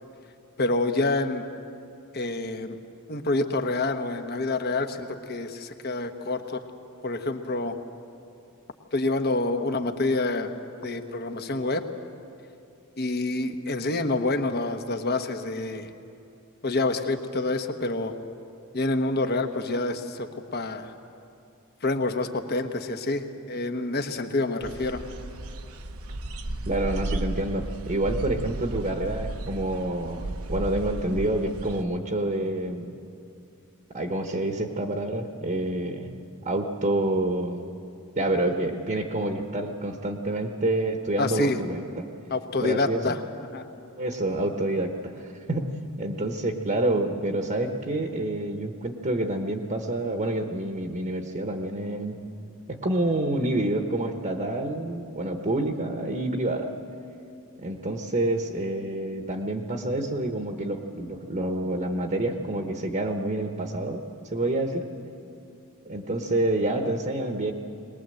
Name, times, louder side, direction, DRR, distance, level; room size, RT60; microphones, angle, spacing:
voice 1, 0.6-1.4 2.1-2.8 3.1-6.6 7.0-7.8 8.9-10.5 10.8-11.8 13.0-15.9 16.6-18.1 18.7-20.9 21.8-25.0 41.2-41.6 42.3-43.2 43.5-43.6, left 2 dB, 45° left, 7 dB, 1.2 m, -27 dB
sound 1, 24.6-31.8, right 2 dB, 70° right, 1.0 m, -34 dB
voice 2, 26.7-32.9 33.9-36.1 36.4-37.7 38.2-42.1 42.6-43.0 44.0-45.7 46.0-52.2 52.7-56.7 57.6-64.0 64.3-64.8 65.8-67.5, right 1 dB, 35° right, 4 dB, 1.1 m, -28 dB
21.5 x 20.0 x 7.8 m, 2.6 s
head